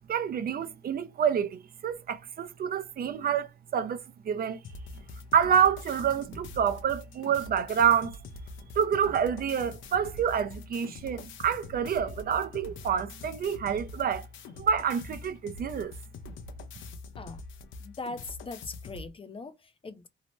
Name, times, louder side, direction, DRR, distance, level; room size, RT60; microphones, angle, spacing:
voice 1, 0.1-4.6 5.3-8.2 8.8-14.3 14.6-15.9, right 8 dB, 50° right, 0.5 m, -28 dB
sound 1, 4.6-19.1, left 3 dB, 75° left, 0.6 m, -44 dB
voice 2, 17.8-20.1, left 3 dB, 25° left, 0.5 m, -40 dB
2.7 x 2.0 x 3.0 m
cardioid pair, 90°, 20 cm